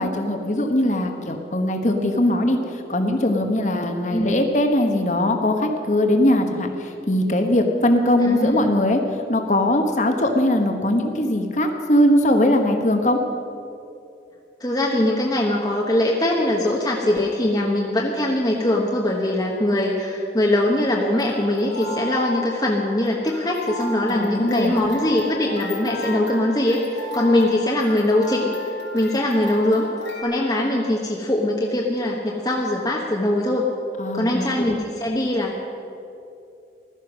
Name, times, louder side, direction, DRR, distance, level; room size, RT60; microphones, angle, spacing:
voice 1, 0.0-9.0 9.3-13.2 24.1-24.8 34.0-34.7, left 1 dB, 40° left, 4 dB, 1.2 m, -20 dB
voice 2, 8.2-8.7 14.6-28.5 28.9-29.9 30.2-33.7 34.1-35.6, left 1 dB, 20° left, -2 dB, 1.2 m, -22 dB
sound 1, 21.0-30.2, left 2 dB, 85° left, 4.0 m, -34 dB
15.5 x 12.5 x 6.3 m, 2.6 s
head